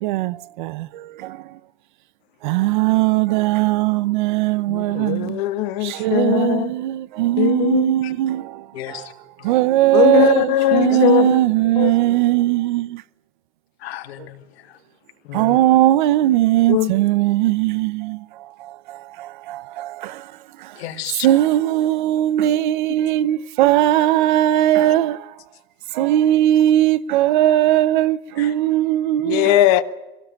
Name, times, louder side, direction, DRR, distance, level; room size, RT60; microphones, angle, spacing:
voice 1, 0.0-1.4 2.4-5.4 5.8-9.1 9.4-13.0 15.3-18.2 18.6-20.3 20.6-20.7 21.2-25.3 25.9-29.6, right 14 dB, 50° right, 0.9 m, -19 dB
voice 2, 4.7-6.7 7.4-7.9 9.9-11.4 11.8-11.9 15.3-15.6 16.7-16.9 29.2-29.8, left 15 dB, 40° left, 1.4 m, -19 dB
voice 3, 8.7-9.1 9.4-9.5 10.9-11.2 13.8-14.8 20.7-21.3 28.4-28.5, left 12 dB, 85° left, 3.2 m, -33 dB
24.0 x 18.0 x 9.5 m
supercardioid pair, 175°, 31 cm